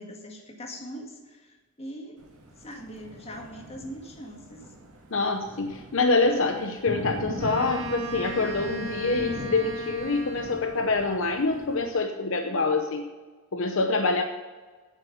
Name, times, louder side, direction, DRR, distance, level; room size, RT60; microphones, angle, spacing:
voice 1, 0.0-2.2 2.6-4.6, equal, 30° left, 1 dB, 1.8 m, -41 dB
Thunder, 2.2-11.8, right 1 dB, 75° right, 2.2 m, -41 dB
voice 2, 5.1-13.0 13.5-14.2, left 3 dB, 65° left, 5 dB, 0.8 m, -26 dB
Wind instrument woodwind instrument, 7.4-10.9, right 2 dB, 35° right, 3.5 m, -37 dB
9.1 x 7.6 x 7.1 m, 1.4 s
head